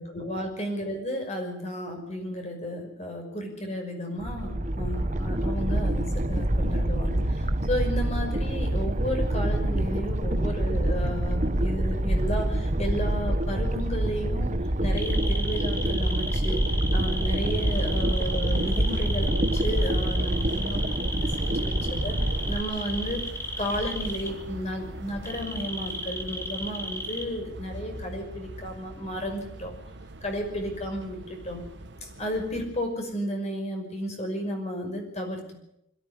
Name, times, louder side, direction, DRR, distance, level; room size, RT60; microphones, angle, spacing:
voice 1, 0.0-22.2 22.5-23.3 23.6-29.8 30.2-31.6 32.0-35.6, equal, 35° left, 4 dB, 5.7 m, -33 dB
sound 1, 4.2-22.6, right 1 dB, 40° right, 1.1 m, -26 dB
sound 2, 14.9-24.3 25.3-27.3, left 1 dB, 15° left, 2.4 m, -34 dB
sound 3, 17.3-33.0, right 1 dB, 60° right, 1.3 m, -41 dB
21.5 x 15.5 x 9.9 m, 0.80 s
head